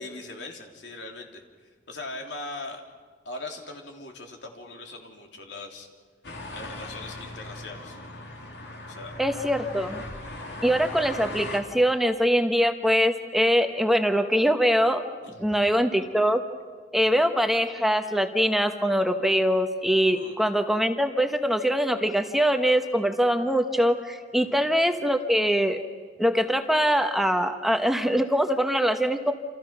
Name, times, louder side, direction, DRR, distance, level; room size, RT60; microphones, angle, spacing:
voice 1, 0.0-2.8 3.2-5.9 6.5-8.0 8.9-9.1 15.2-15.7 17.0-17.2 20.1-20.4 24.4-24.7, left 2 dB, 85° left, 2 dB, 3.4 m, -40 dB
sound 1, 6.2-11.6, left 2 dB, 65° left, 3.6 m, -38 dB
voice 2, 9.2-10.0 10.6-15.0 15.4-16.4 16.9-25.8 26.2-29.3, equal, ahead, 6 dB, 1.1 m, -23 dB
28.5 x 28.5 x 6.0 m, 1.5 s
head